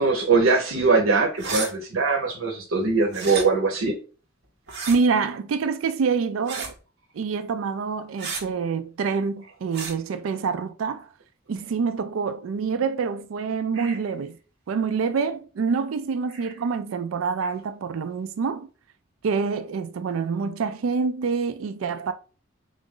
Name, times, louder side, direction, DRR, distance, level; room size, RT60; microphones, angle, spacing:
voice 1, 0.0-3.9 13.7-13.9, right 4 dB, 90° right, 0.9 m, -22 dB
sound 1, 1.4-1.7 3.1-3.4 4.7-5.0 6.5-6.8 8.2-8.4 9.7-9.9, right 4 dB, 60° right, 1.2 m, -31 dB
voice 2, 4.9-6.7 7.1-11.1 11.5-14.4 14.7-18.7 19.2-22.1, right 5 dB, 75° right, 0.4 m, -26 dB
3.9 x 2.5 x 3.6 m
head